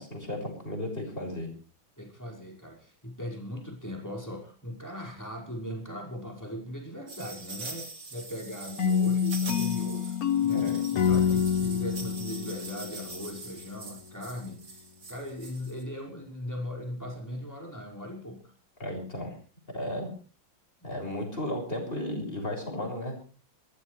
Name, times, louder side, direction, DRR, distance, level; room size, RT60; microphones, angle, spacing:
voice 1, 0.0-1.5 10.5-10.8 18.8-19.3 19.7-20.1 20.8-23.2, left 1 dB, 25° left, 2 dB, 6.5 m, -34 dB
voice 2, 2.0-18.5 20.8-21.1, equal, 10° left, -1 dB, 5.4 m, -39 dB
sound 1, 7.1-15.8, right 3 dB, 55° right, 3.8 m, -43 dB
sound 2, 8.8-13.7, left 8 dB, 55° left, 1.3 m, -27 dB
25.5 x 14.5 x 3.4 m, 0.38 s
omnidirectional pair, 2.2 m